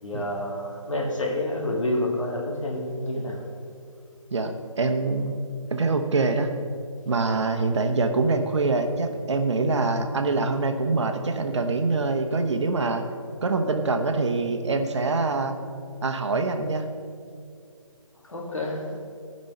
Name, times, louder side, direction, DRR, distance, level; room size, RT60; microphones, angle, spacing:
voice 1, 0.0-3.4 18.3-19.0, left 1 dB, 70° left, 0 dB, 2.2 m, -28 dB
voice 2, 4.8-5.4 5.7-6.5 7.1-13.0 13.4-15.6 16.0-16.8, right 3 dB, 60° right, 6 dB, 1.0 m, -24 dB
14.0 x 5.4 x 5.5 m, 2.3 s
figure-of-eight pair, 160°, 17 cm